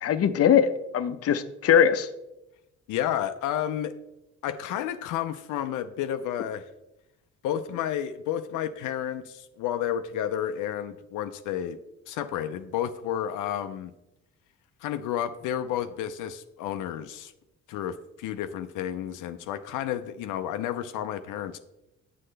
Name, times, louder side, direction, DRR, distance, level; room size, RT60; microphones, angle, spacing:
voice 1, 0.0-2.1, left 8 dB, 50° left, 10 dB, 0.6 m, -21 dB
voice 2, 2.9-3.9 4.4-6.6 7.4-11.8 12.1-13.9 14.8-17.3 17.7-21.6, left 10 dB, 90° left, 8 dB, 0.5 m, -31 dB
7.7 x 7.6 x 3.3 m, 0.93 s
cardioid pair, 90°, 30 cm